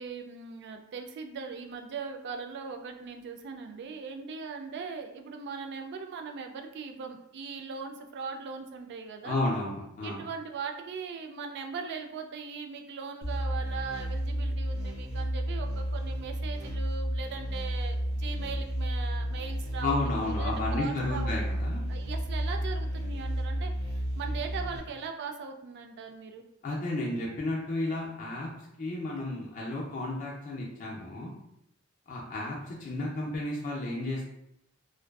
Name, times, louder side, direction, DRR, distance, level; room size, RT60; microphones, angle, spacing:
voice 1, 0.0-9.4 10.0-21.3 21.9-26.4, right 5 dB, 55° right, 5 dB, 0.3 m, -39 dB
voice 2, 9.2-10.2 19.8-21.8 26.6-28.5 28.8-31.3 32.1-34.3, left 2 dB, 40° left, -3 dB, 0.4 m, -32 dB
sound 1, 13.2-24.8, equal, 85° right, 0.9 m, -32 dB
2.5 x 2.2 x 2.3 m, 0.80 s
head